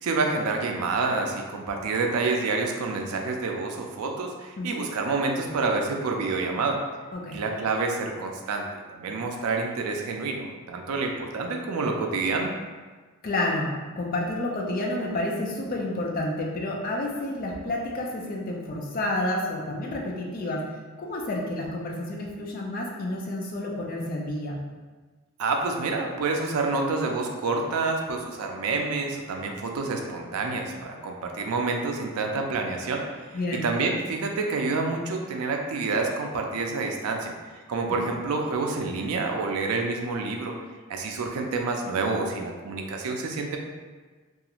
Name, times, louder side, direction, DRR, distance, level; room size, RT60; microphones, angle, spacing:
voice 1, 0.0-6.8 7.3-12.6 25.4-37.3 37.7-40.5 40.9-43.6, right 3 dB, 80° right, 2 dB, 0.4 m, -28 dB
voice 2, 13.2-20.7 21.0-24.6 33.3-33.6 37.9-38.1, left 1 dB, 40° left, -1 dB, 0.4 m, -30 dB
2.4 x 2.3 x 2.9 m, 1.4 s
head